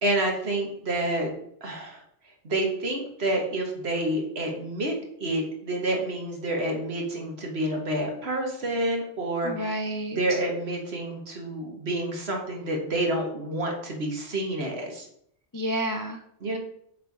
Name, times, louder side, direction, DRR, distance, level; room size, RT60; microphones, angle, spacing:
voice 1, 0.0-1.3 1.6-2.0 2.4-4.9 5.2-9.8 10.1-15.1 16.4-16.6, right 1 dB, 60° right, 1 dB, 1.7 m, -28 dB
voice 2, 9.4-10.4 15.5-16.2, right 1 dB, 30° left, 3 dB, 0.3 m, -30 dB
7.4 x 3.3 x 5.3 m, 0.69 s
omnidirectional pair, 1.2 m